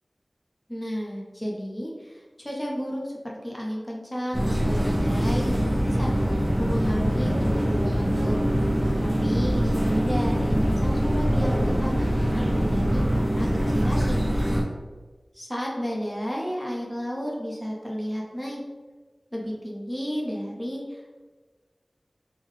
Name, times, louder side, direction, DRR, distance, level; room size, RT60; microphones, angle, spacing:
voice 1, 0.7-6.1 6.6-8.4 9.0-14.2 15.3-18.6 19.3-21.2, equal, 15° left, -3 dB, 0.8 m, -32 dB
sound 1, 4.3-14.6, equal, 15° right, 0.7 m, -23 dB
3.2 x 2.2 x 3.6 m, 1.3 s
wide cardioid pair, 45°, 0 cm